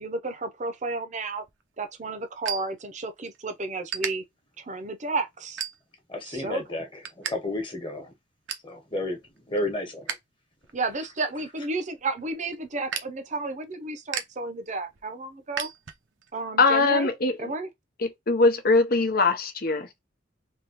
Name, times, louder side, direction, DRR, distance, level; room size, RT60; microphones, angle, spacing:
voice 1, 0.0-1.4 1.8-4.2 4.6-5.6 6.3-6.6 10.7-15.7 16.3-17.1 17.4-17.7, right 3 dB, 40° right, 0.8 m, -32 dB
sound 1, 1.3-3.4 3.7-4.1 4.7-4.9 5.4-6.1 6.5-7.3 7.6-7.7 8.1-8.7 9.2-10.2 10.5-16.3, right 8 dB, 85° right, 0.8 m, -37 dB
voice 2, 6.1-8.1 8.6-10.1, left 1 dB, 25° left, 1.3 m, -32 dB
voice 3, 16.6-17.5 18.0-19.8, left 3 dB, 55° left, 0.8 m, -22 dB
3.7 x 2.9 x 3.0 m
head